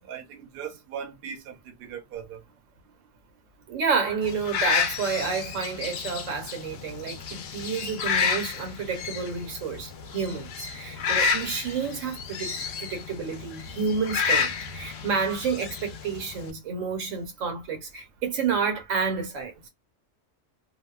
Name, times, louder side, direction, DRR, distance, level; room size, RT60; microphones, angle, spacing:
voice 1, 0.1-2.4 12.5-12.6, right 8 dB, 55° right, 0.8 m, -39 dB
voice 2, 3.7-19.7, right 5 dB, 80° right, 1.2 m, -30 dB
sound 1, 4.2-16.5, left 6 dB, 65° left, 0.7 m, -30 dB
2.7 x 2.1 x 2.3 m
omnidirectional pair, 1.3 m